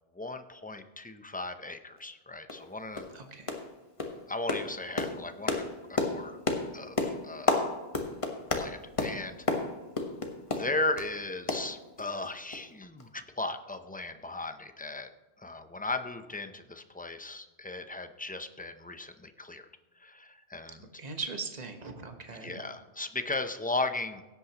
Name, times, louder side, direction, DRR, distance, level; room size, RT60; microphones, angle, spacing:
voice 1, 0.1-3.1 4.3-5.6 5.9-6.4 6.7-7.7 8.5-9.5 10.5-15.1 15.4-19.7 20.0-21.0 22.4-24.2, left 2 dB, 15° left, 8 dB, 0.4 m, -36 dB
sound 1, 2.0-2.1 2.5-2.7 2.9-3.2 3.5-3.7 4.0-11.1 11.5-12.3 12.5-12.6 13.0-13.1, left 3 dB, 30° left, 1.2 m, -32 dB
voice 2, 3.1-3.5 21.0-22.6, right 4 dB, 40° right, 5 dB, 1.3 m, -39 dB
16.5 x 8.3 x 2.9 m, 1.2 s
omnidirectional pair, 1.1 m